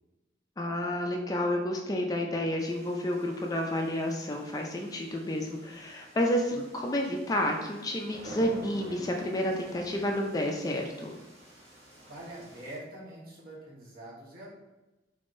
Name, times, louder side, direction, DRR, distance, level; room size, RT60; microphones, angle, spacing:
voice 1, 0.6-11.1, left 1 dB, 20° left, 1 dB, 0.3 m, -30 dB
sound 1, 2.6-12.8, right 1 dB, 35° right, 1.2 m, -50 dB
voice 2, 12.1-14.5, right 1 dB, 55° right, -6 dB, 1.2 m, -44 dB
3.5 x 3.5 x 2.5 m, 1.1 s
head